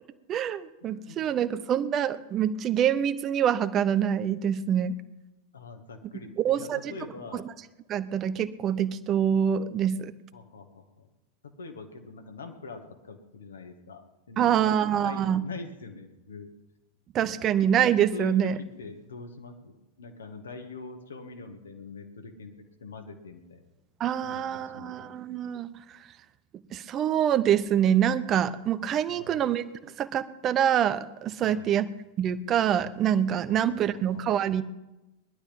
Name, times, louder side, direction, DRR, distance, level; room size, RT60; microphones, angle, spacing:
voice 1, 0.3-5.0 6.4-6.9 7.3-7.4 7.9-10.1 14.4-15.5 17.1-18.6 24.0-26.0 26.7-31.9 32.2-34.6, right 9 dB, 30° right, 13 dB, 0.9 m, -25 dB
voice 2, 0.8-1.3 5.5-7.5 10.3-11.1 11.4-16.5 17.2-17.5 18.1-22.5 22.8-23.6 24.2-25.2 29.1-29.5 31.4-31.8 33.5-34.3, left 4 dB, 70° left, 5 dB, 2.1 m, -44 dB
20.0 x 12.0 x 5.5 m, 1.0 s
figure-of-eight pair, 90°, 0 cm